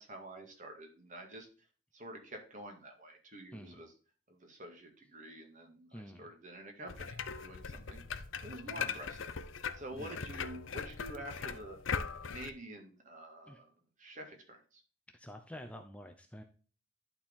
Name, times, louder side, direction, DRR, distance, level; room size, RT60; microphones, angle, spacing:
voice 1, 0.0-1.5 1.9-3.9 4.3-5.9 6.2-8.0 8.4-9.3 9.7-11.8 12.2-13.7 14.0-14.8, right 1 dB, 40° right, 4 dB, 2.1 m, -48 dB
voice 2, 3.5-3.8 5.9-6.3 8.7-9.0 9.9-10.2 13.5-13.6 15.1-16.4, equal, 5° left, 5 dB, 0.7 m, -49 dB
sound 1, 6.9-12.5, left 6 dB, 80° left, 0.7 m, -40 dB
11.5 x 4.4 x 3.6 m, 0.38 s
head